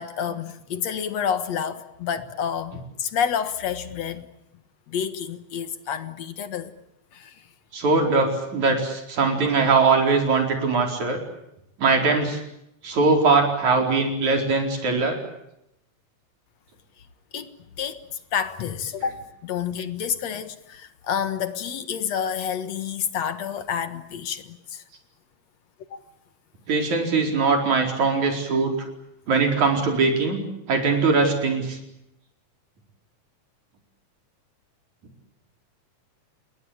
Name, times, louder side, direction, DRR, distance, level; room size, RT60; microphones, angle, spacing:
voice 1, 0.0-4.3 4.9-6.7 7.1-7.5 17.3-24.8 25.9-26.0, left 8 dB, 65° left, 2.6 m, -29 dB
voice 2, 7.7-11.2 11.8-12.4 12.8-15.2 26.7-28.8 29.3-30.4 30.7-31.8, right 4 dB, 75° right, 5.9 m, -21 dB
29.0 x 20.5 x 8.8 m
omnidirectional pair, 3.4 m